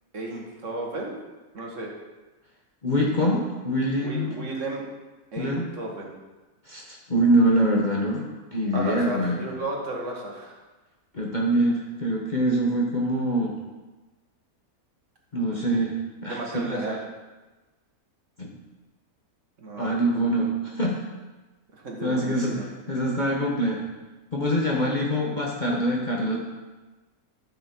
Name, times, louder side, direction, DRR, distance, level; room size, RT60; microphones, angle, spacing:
voice 1, 0.1-1.2 1.5-1.9 4.0-4.8 5.3-6.1 8.7-10.6 16.2-17.0 19.6-20.6 21.7-22.7, right 2 dB, 55° right, -1 dB, 1.9 m, -34 dB
voice 2, 2.8-4.3 5.4-5.7 6.6-9.5 11.1-13.5 15.3-17.0 18.4-18.5 19.8-21.0 22.0-22.5 22.9-23.8 24.3-26.4, right 1 dB, 35° left, -3 dB, 1.2 m, -24 dB
13.0 x 5.9 x 4.5 m, 1.2 s
omnidirectional pair, 1.6 m